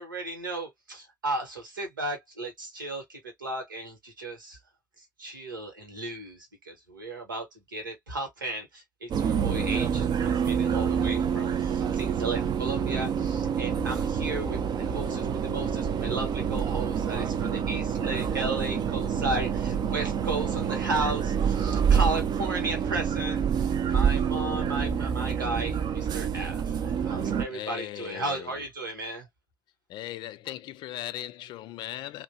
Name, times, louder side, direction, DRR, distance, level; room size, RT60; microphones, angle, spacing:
voice 1, 0.0-4.6 5.0-29.3, right 2 dB, 80° right, 1.1 m, -35 dB
sound 1, 9.1-27.5, right 7 dB, 40° right, 0.6 m, -27 dB
voice 2, 27.5-28.6 29.9-32.2, left 13 dB, 45° left, 0.4 m, -38 dB
2.9 x 2.2 x 2.7 m
figure-of-eight pair, 60°, 11 cm